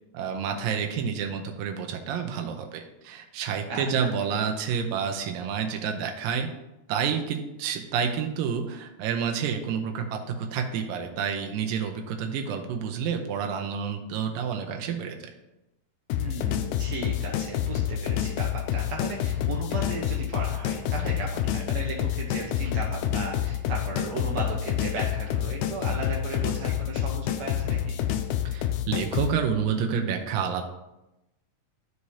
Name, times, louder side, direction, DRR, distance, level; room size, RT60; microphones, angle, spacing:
voice 1, 0.1-6.5 6.9-15.2 28.5-30.6, right 7 dB, 90° right, 4 dB, 2.5 m, -29 dB
voice 2, 3.7-4.1 16.2-28.0, right 3 dB, 70° right, -2 dB, 1.7 m, -35 dB
sound 1, 16.1-29.3, left 11 dB, 80° left, 1.9 m, -28 dB
13.5 x 4.8 x 2.8 m, 0.95 s
omnidirectional pair, 3.9 m